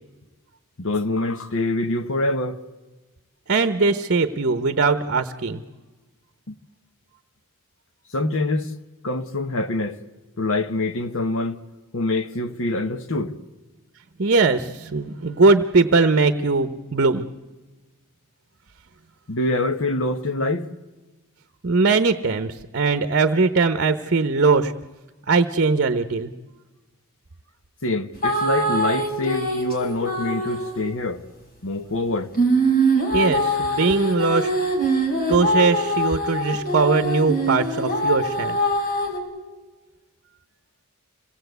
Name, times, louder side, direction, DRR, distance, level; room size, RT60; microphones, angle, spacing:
voice 1, 0.8-2.6 6.5-6.6 8.1-8.7 9.0-10.0 10.4-11.6 11.9-13.3 19.3-20.7 27.8-31.2 31.6-32.3, left 2 dB, 65° left, 1.2 m, -25 dB
voice 2, 3.5-5.6 14.2-17.2 21.6-24.7 25.3-26.3 33.1-34.5 35.3-38.6, right 4 dB, 55° right, 0.9 m, -20 dB
sound 1, 28.2-30.8 32.3-39.2, right 1 dB, 45° left, 5.1 m, -23 dB
26.5 x 18.0 x 8.1 m
head